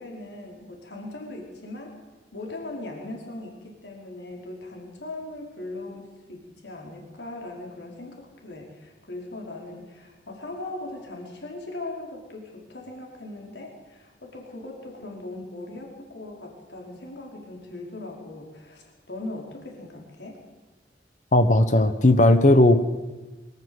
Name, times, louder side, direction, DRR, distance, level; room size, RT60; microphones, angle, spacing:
voice 1, 0.0-1.9 2.3-20.4, left 2 dB, 80° left, 0 dB, 5.1 m, -39 dB
voice 2, 21.3-22.9, left 1 dB, 45° left, 9 dB, 1.2 m, -17 dB
24.5 x 14.0 x 8.1 m, 1.2 s
head